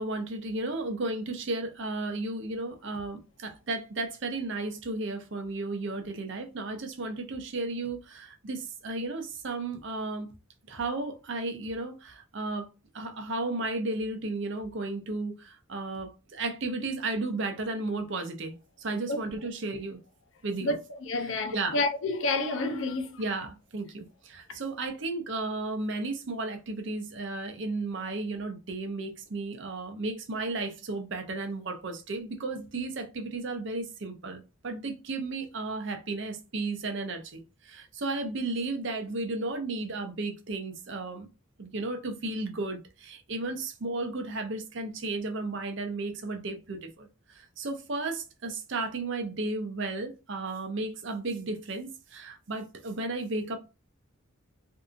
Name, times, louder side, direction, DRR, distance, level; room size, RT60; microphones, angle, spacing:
voice 1, 0.0-10.3 10.7-12.7 12.9-20.0 20.4-20.8 21.2-21.8 23.2-41.3 41.6-53.6, right 2 dB, 60° right, 0.6 m, -34 dB
voice 2, 20.6-23.1, left 2 dB, 65° left, 0.5 m, -29 dB
2.7 x 2.5 x 2.4 m
head